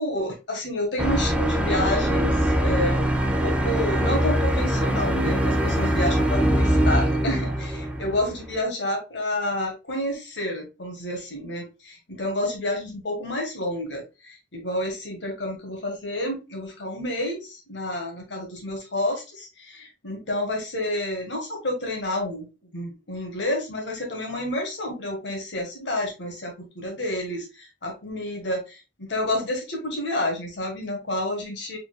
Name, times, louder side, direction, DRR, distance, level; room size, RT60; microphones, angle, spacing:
voice 1, 0.0-22.5 22.7-31.8, left 1 dB, 80° left, 2 dB, 1.8 m, -29 dB
sound 1, 1.0-8.6, equal, 5° right, 0.6 m, -22 dB
4.7 x 4.3 x 2.3 m, 0.29 s
head